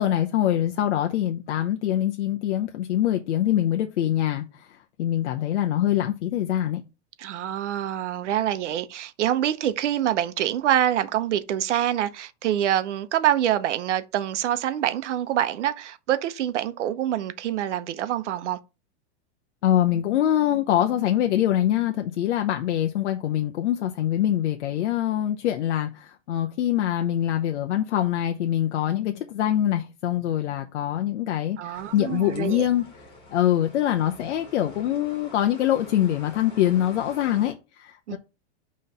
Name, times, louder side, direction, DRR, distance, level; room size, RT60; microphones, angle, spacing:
voice 1, 0.0-6.8 19.6-32.9 33.3-38.2, left 11 dB, 80° left, 0.8 m, -24 dB
voice 2, 7.2-18.6 31.6-32.7 38.1-38.2, right 11 dB, 85° right, 0.9 m, -25 dB
sound 1, 31.7-37.5, left 2 dB, 15° left, 1.8 m, -46 dB
5.7 x 3.2 x 5.4 m
supercardioid pair, 175°, 35 cm